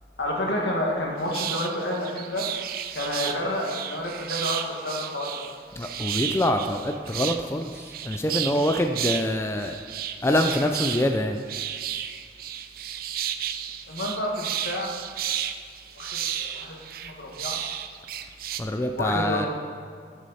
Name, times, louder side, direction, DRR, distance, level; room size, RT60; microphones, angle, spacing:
voice 1, 0.2-2.5 2.9-5.4 13.9-14.9 16.0-17.6 18.9-19.5, left 1 dB, 80° left, -1 dB, 1.8 m, -29 dB
sound 1, 1.3-18.6, right 10 dB, 55° right, 0.4 m, -33 dB
voice 2, 5.8-9.8 10.2-11.4 18.6-19.5, left 1 dB, 15° left, 5 dB, 0.4 m, -25 dB
13.0 x 6.4 x 4.2 m, 2.1 s
head